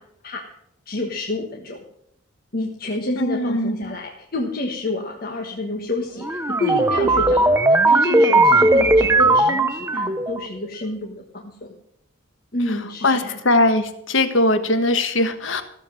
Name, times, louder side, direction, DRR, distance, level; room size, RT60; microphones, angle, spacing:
voice 1, 0.9-1.8 2.5-11.7 12.5-13.4, left 2 dB, 45° left, 1 dB, 1.4 m, -28 dB
voice 2, 3.1-3.9 12.7-12.8 13.0-15.6, left 2 dB, 70° left, 9 dB, 1.4 m, -20 dB
sound 1, 6.2-10.4, right 2 dB, 10° right, 0.7 m, -17 dB
15.0 x 7.4 x 7.6 m, 0.76 s
head